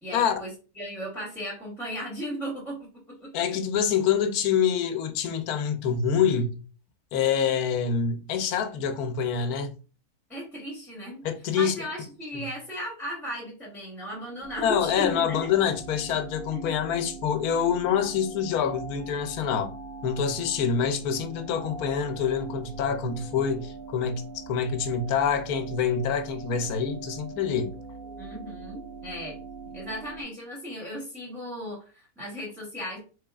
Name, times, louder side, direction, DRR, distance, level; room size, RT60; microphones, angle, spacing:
voice 1, 0.0-2.8 3.2-3.3 10.3-11.2 11.5-15.4 16.5-16.6 28.2-29.4 29.7-33.0, equal, ahead, 0.8 m, -36 dB
voice 2, 3.3-6.6 7.1-9.7 11.2-11.8 14.6-19.7 20.0-27.8, left 7 dB, 80° left, 1.1 m, -26 dB
sound 1, 14.4-30.2, right 4 dB, 80° right, 1.5 m, -42 dB
3.9 x 3.3 x 2.3 m
omnidirectional pair, 1.6 m